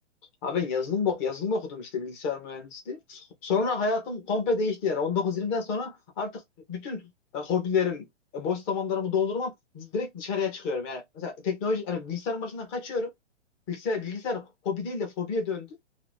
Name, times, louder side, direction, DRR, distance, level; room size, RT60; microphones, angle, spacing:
voice 1, 0.4-6.4 6.7-8.0 8.3-13.1 13.7-15.7, left 5 dB, 10° left, 0.4 m, -29 dB
2.5 x 2.2 x 3.3 m
hypercardioid pair, 135°, 35 cm